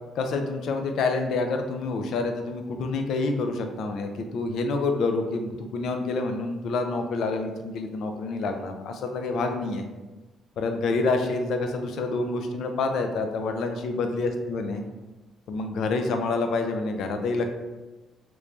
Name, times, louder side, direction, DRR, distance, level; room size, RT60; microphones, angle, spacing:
voice 1, 0.2-9.9 10.6-14.8 15.5-17.5, left 3 dB, 65° left, 5 dB, 0.3 m, -27 dB
3.0 x 2.5 x 3.3 m, 1.1 s
cardioid pair, 150°, 0 cm